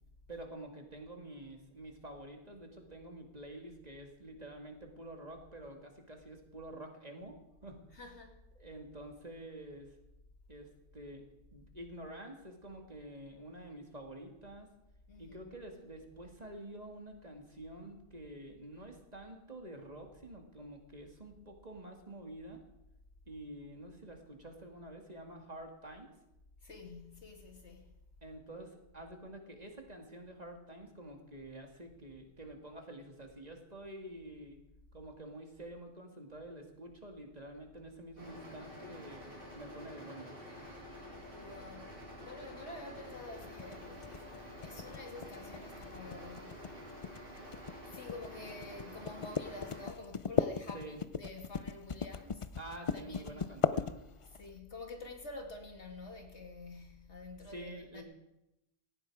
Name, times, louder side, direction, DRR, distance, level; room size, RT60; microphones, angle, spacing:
voice 1, 0.3-7.4 7.6-7.8 8.5-9.9 10.5-11.2 11.5-14.7 15.2-22.6 23.3-26.1 28.2-34.6 34.9-40.4 50.7-51.0 52.6-54.0 57.4-58.0, right 1 dB, 35° right, 2.5 m, -48 dB
voice 2, 7.9-8.4 15.1-15.5 26.6-27.9 41.3-41.9 42.2-46.6 47.9-52.5 52.9-53.5 54.3-58.0, left 3 dB, 75° left, 2.7 m, -48 dB
sound 1, 38.2-49.9, equal, 50° right, 3.7 m, -49 dB
sound 2, 43.4-54.4, left 6 dB, 40° left, 0.4 m, -37 dB
18.0 x 14.5 x 4.9 m
omnidirectional pair, 1.2 m